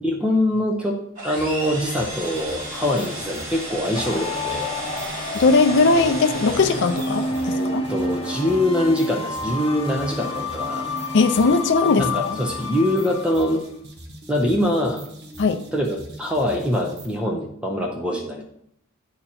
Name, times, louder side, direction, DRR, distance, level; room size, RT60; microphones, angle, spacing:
voice 1, 0.0-4.7 7.3-10.9 12.0-13.6 14.3-15.1 15.7-18.4, left 1 dB, 5° right, 1 dB, 0.6 m, -24 dB
sound 1, 1.1-7.7, right 1 dB, 35° right, 2.2 m, -34 dB
sound 2, 1.4-17.2, right 1 dB, 55° right, 1.1 m, -41 dB
sound 3, 3.9-13.6, left 2 dB, 30° left, 0.9 m, -30 dB
voice 2, 5.3-7.9 11.1-12.4 15.4-15.6, left 3 dB, 55° left, 7 dB, 0.5 m, -19 dB
8.8 x 2.9 x 4.1 m, 0.72 s
head